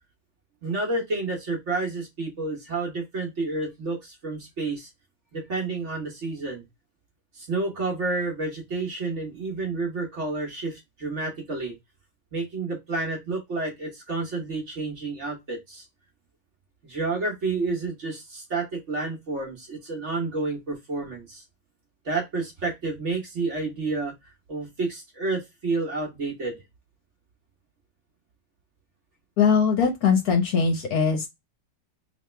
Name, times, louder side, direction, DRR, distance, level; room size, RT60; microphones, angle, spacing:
voice 1, 0.6-4.9 5.3-6.6 7.3-11.7 12.3-15.9 16.8-21.4 22.0-24.1 24.5-26.6, right 3 dB, 45° right, 1.2 m, -30 dB
voice 2, 29.4-31.3, left 6 dB, 60° left, 1.2 m, -21 dB
3.5 x 3.1 x 3.2 m
omnidirectional pair, 2.0 m